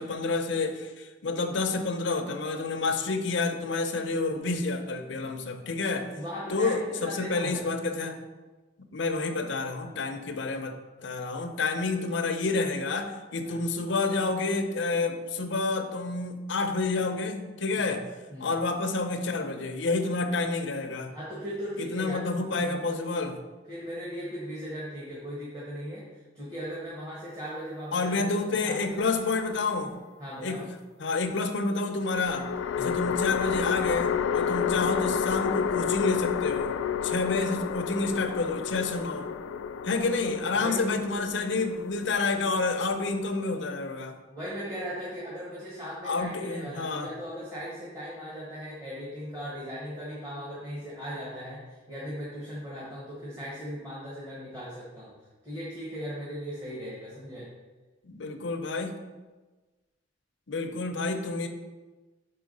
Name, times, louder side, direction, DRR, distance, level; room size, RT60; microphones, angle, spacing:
voice 1, 0.0-6.1 6.5-8.2 8.9-10.7 11.0-18.0 18.4-21.1 21.8-23.3 27.9-30.0 30.4-30.6 31.0-32.4 32.8-36.7 37.0-39.3 39.8-44.1 46.0-47.1 58.0-59.0 60.5-61.5, left 3 dB, 65° left, 6 dB, 0.7 m, -29 dB
voice 2, 6.1-7.7 13.4-13.6 17.8-18.0 18.3-18.5 21.1-23.0 23.7-29.0 30.2-30.7 32.8-33.0 40.5-41.0 44.3-55.1 55.4-57.5, equal, 20° right, -7 dB, 1.4 m, -38 dB
sound 1, 28.9-29.8 32.0-43.4, left 7 dB, 90° left, 0.3 m, -31 dB
5.5 x 4.7 x 5.3 m, 1.3 s
head